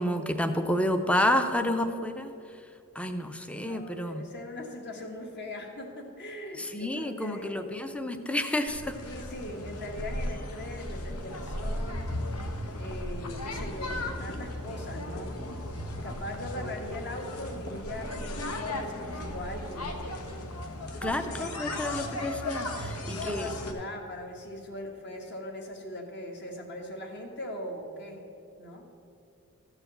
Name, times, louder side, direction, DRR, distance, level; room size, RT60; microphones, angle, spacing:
voice 1, 0.0-2.3 3.0-4.2 6.7-8.9 21.0-23.5, left 1 dB, 5° left, 8 dB, 0.6 m, -29 dB
voice 2, 3.6-7.6 9.0-12.1 12.7-15.4 16.0-19.9 21.0-21.5 23.0-28.2 28.6-28.9, left 1 dB, 50° left, 2 dB, 1.5 m, -40 dB
sound 1, 8.7-23.7, left 1 dB, 85° left, 1.1 m, -36 dB
14.0 x 4.9 x 7.8 m, 2.7 s
head